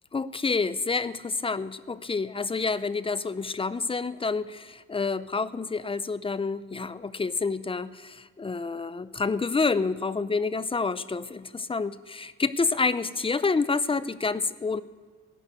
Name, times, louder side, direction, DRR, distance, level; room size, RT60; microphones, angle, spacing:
voice 1, 0.1-14.8, left 4 dB, 20° left, 16 dB, 0.5 m, -28 dB
15.0 x 6.2 x 9.3 m, 1.5 s
cardioid pair, 90°, 30 cm